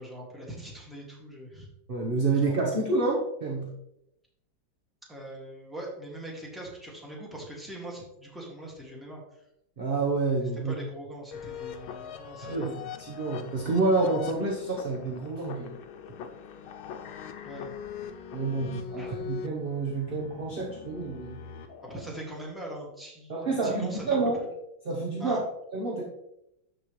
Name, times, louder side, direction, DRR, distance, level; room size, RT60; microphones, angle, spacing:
voice 1, 0.0-1.7 2.5-2.6 5.1-9.2 10.6-12.8 17.4-17.7 19.0-19.1 21.8-24.2 25.2-25.4, right 1 dB, ahead, -3 dB, 1.8 m, -42 dB
voice 2, 1.9-3.7 9.8-10.7 12.4-15.8 18.3-21.4 23.3-24.4 24.8-25.4 25.7-26.0, right 3 dB, 40° right, -2 dB, 0.9 m, -28 dB
sound 1, 11.3-22.3, left 7 dB, 80° left, 1.5 m, -42 dB
12.5 x 4.4 x 3.2 m, 0.82 s
omnidirectional pair, 2.2 m